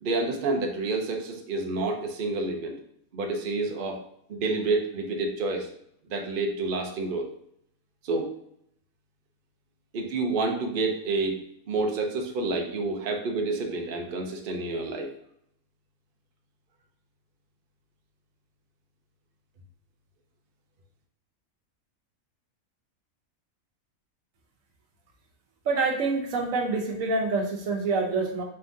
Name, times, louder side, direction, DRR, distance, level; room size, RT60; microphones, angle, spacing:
voice 1, 0.0-2.8 3.1-4.0 4.3-5.7 6.1-7.3 8.0-8.3 9.9-11.4 11.7-15.1, right 3 dB, 50° right, 2 dB, 0.7 m, -29 dB
voice 2, 25.6-28.4, right 3 dB, 70° right, 2 dB, 1.1 m, -26 dB
4.4 x 3.5 x 2.6 m, 0.71 s
omnidirectional pair, 1.5 m